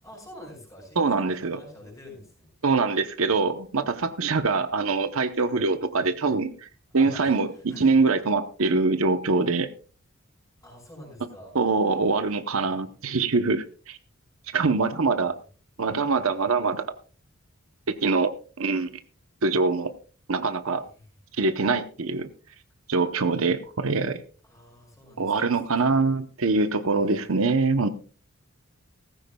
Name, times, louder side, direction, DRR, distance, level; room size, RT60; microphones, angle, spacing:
voice 1, 0.0-2.5 6.9-7.9 10.6-11.6 12.6-12.9 20.9-21.0 24.4-26.1 26.9-27.1, equal, 15° left, 0 dB, 5.7 m, -47 dB
voice 2, 1.0-1.6 2.6-6.7 6.9-9.7 11.5-14.0 14.5-15.3 15.8-16.9 17.9-18.9 19.4-19.9 20.3-20.8 21.3-22.3 22.9-24.2 25.2-27.9, right 4 dB, 75° right, 10 dB, 0.9 m, -24 dB
17.0 x 14.5 x 2.3 m, 0.37 s
head